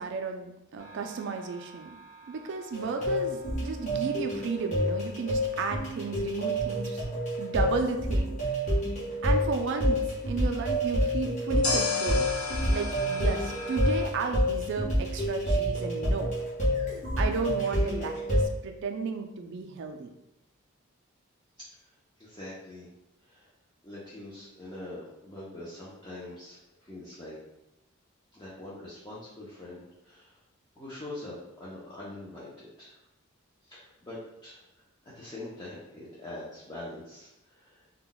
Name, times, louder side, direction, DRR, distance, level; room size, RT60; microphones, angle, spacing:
voice 1, 0.0-1.9 2.3-7.0 7.4-8.5 9.2-12.2 12.7-16.3 17.2-20.1, right 4 dB, 55° right, 4 dB, 0.3 m, -33 dB
sound 1, 0.8-3.8 11.6-14.1, left 3 dB, 80° left, 0.9 m, -35 dB
sound 2, 2.7-18.5, equal, 35° left, 0.9 m, -28 dB
voice 2, 21.6-22.9 23.2-23.5 23.8-27.4 28.3-30.4 30.8-33.0 33.6-34.7 35.0-37.9, left 1 dB, 20° left, -8 dB, 0.5 m, -44 dB
2.2 x 2.1 x 3.8 m, 0.89 s
head